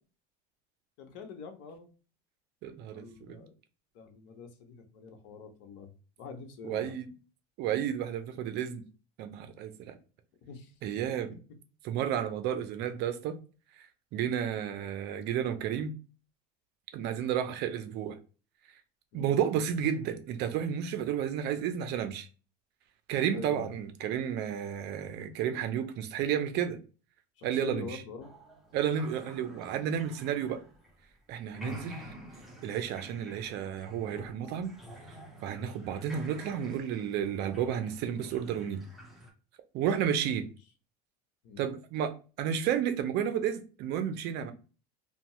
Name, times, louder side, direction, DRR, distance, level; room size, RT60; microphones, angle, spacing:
voice 1, 1.0-1.9 2.9-3.6 3.9-6.9 10.4-11.0 19.1-19.3 23.3-23.7 27.4-28.3 40.2-40.5 41.4-41.6, left 5 dB, 70° left, 0.8 m, -45 dB
voice 2, 2.6-3.4 6.6-7.1 7.6-8.9 9.2-9.9 10.8-11.4 11.8-13.4 14.1-15.9 16.9-18.2 19.1-22.3 23.1-26.8 27.4-27.9 28.7-30.6 31.3-32.0 32.6-34.7 35.4-38.8 39.7-40.5 41.6-44.5, right 9 dB, 55° right, 0.5 m, -32 dB
sound 1, 28.2-31.2 31.4-39.3, equal, ahead, 0.7 m, -49 dB
2.7 x 2.2 x 2.9 m
supercardioid pair, 115°, 21 cm